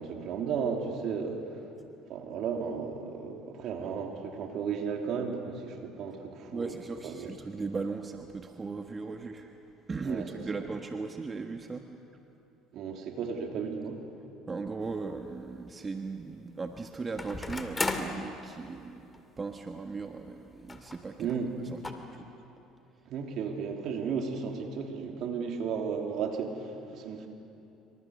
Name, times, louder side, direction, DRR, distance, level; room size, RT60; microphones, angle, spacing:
voice 1, 0.0-1.6 2.1-6.7 7.0-7.3 10.0-10.3 12.7-14.0 21.2-21.5 23.1-27.3, right 6 dB, 60° right, 2 dB, 3.4 m, -34 dB
voice 2, 6.5-9.5 9.9-11.9 14.5-21.3 21.7-22.3, right 4 dB, 25° right, 4 dB, 1.5 m, -38 dB
sound 1, 14.8-14.9 17.2-18.2 19.1-19.2 19.5-19.6 20.7-21.0 21.3-21.4 21.8-21.9, left 2 dB, 20° left, 2.5 m, -34 dB
27.5 x 25.5 x 6.6 m, 2.8 s
supercardioid pair, 85°, 0 cm